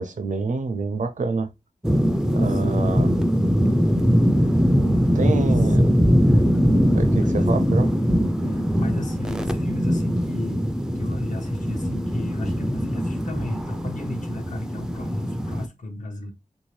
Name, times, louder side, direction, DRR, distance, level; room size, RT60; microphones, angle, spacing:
voice 1, 0.0-1.5 2.3-3.2 5.1-5.9 6.9-7.9, right 3 dB, 65° right, 0.5 m, -27 dB
sound 1, 1.8-15.7, equal, 5° right, 0.3 m, -21 dB
voice 2, 2.5-3.0 5.4-5.8 6.7-7.5 8.5-10.6 10.9-16.3, left 2 dB, 65° left, 0.8 m, -35 dB
3.3 x 2.6 x 3.1 m
wide cardioid pair, 70°, 14 cm